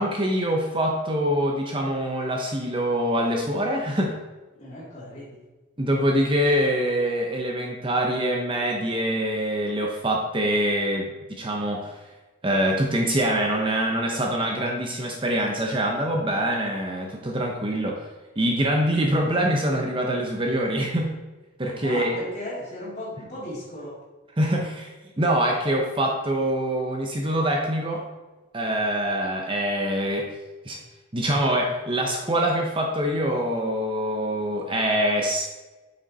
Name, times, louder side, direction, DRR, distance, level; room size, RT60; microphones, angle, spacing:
voice 1, 0.0-4.2 5.8-12.0 12.4-18.1 18.4-21.1 21.6-22.2 24.4-24.9 25.2-28.0 28.5-30.3 30.6-30.8 31.1-35.5, right 1 dB, 25° right, 1 dB, 0.8 m, -24 dB
voice 2, 4.6-5.4 21.8-24.0, left 1 dB, 35° left, -10 dB, 2.2 m, -36 dB
8.6 x 6.4 x 4.1 m, 1.2 s
head